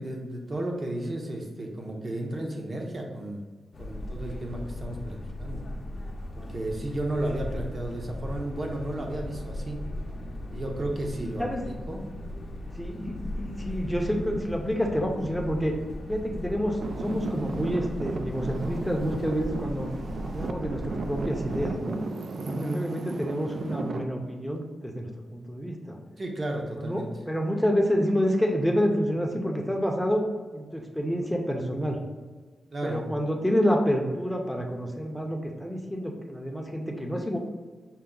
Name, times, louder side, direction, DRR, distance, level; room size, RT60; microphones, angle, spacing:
voice 1, 0.0-3.4 3.8-5.6 6.3-9.8 10.5-12.0 22.4-22.8 26.2-27.1 32.7-33.0, right 1 dB, 40° right, 0 dB, 0.7 m, -33 dB
sound 1, 3.7-21.8, left 1 dB, 45° left, 0.6 m, -37 dB
voice 2, 12.8-15.7 16.1-19.9 20.2-22.0 22.7-26.0 26.7-30.2 30.5-32.0 32.8-37.4, equal, ahead, 1 dB, 0.6 m, -28 dB
Traffic noise roadway noise / Engine, 16.8-24.0, right 3 dB, 60° right, 0.3 m, -35 dB
5.6 x 2.0 x 3.8 m, 1.4 s
wide cardioid pair, 115°, 0 cm